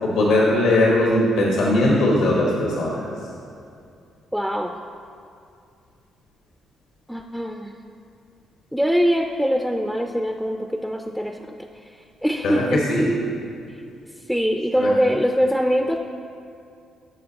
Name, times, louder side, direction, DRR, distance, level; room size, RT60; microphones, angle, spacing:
voice 1, 0.0-3.1 12.4-13.1 14.8-14.9, left 1 dB, 85° left, -3 dB, 1.2 m, -19 dB
voice 2, 4.3-4.8 7.1-7.7 8.7-12.9 14.3-16.0, equal, ahead, 4 dB, 0.3 m, -23 dB
12.5 x 6.1 x 2.8 m, 2.5 s
cardioid pair, 90°, 0 cm